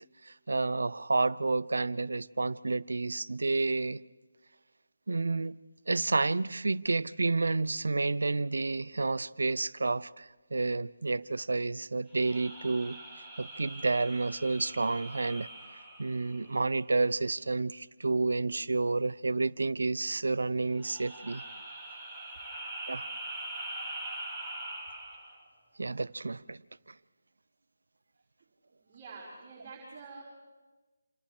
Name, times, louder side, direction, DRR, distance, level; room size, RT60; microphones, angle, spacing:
voice 1, 0.5-4.0 5.1-5.6 5.9-10.2 10.5-13.0 13.4-15.5 16.0-21.4 22.9-23.1 25.8-26.6, right 3 dB, 65° right, 0.6 m, -30 dB
sound 1, 12.1-16.9 20.7-25.4, right 1 dB, 5° left, 4.9 m, -43 dB
voice 2, 28.8-30.2, right 4 dB, 25° right, 5.0 m, -47 dB
28.5 x 28.5 x 3.4 m
figure-of-eight pair, 155°, 0 cm